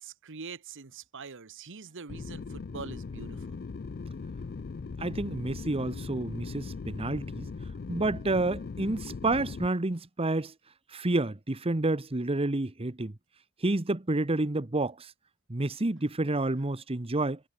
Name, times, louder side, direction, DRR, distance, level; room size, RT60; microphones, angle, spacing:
voice 1, 0.0-3.5, right 5 dB, 60° right, 1.1 m, -44 dB
sound 1, 2.1-9.7, left 4 dB, 45° left, 0.4 m, -39 dB
voice 2, 5.0-7.5 7.9-10.5 10.9-13.1 13.6-15.1 15.5-17.4, right 2 dB, 25° right, 1.0 m, -29 dB
head